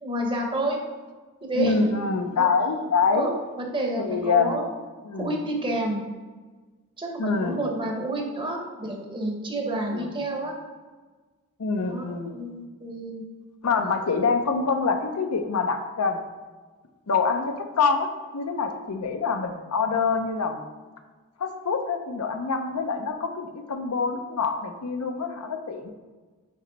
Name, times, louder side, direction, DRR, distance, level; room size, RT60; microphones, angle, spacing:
voice 1, 0.0-0.8 1.4-1.7 2.4-2.5 3.1-4.6 5.1-6.0 7.0-10.5 11.8-13.2 14.0-14.1, right 1 dB, 20° right, 1 dB, 0.9 m, -29 dB
voice 2, 1.5-3.3 4.0-4.6 5.0-5.4 7.2-7.6 9.9-10.1 11.6-12.4 13.6-16.2 17.1-18.1 18.3-20.6 21.4-25.9, left 5 dB, 80° left, 6 dB, 0.6 m, -25 dB
8.7 x 3.1 x 3.9 m, 1.3 s
head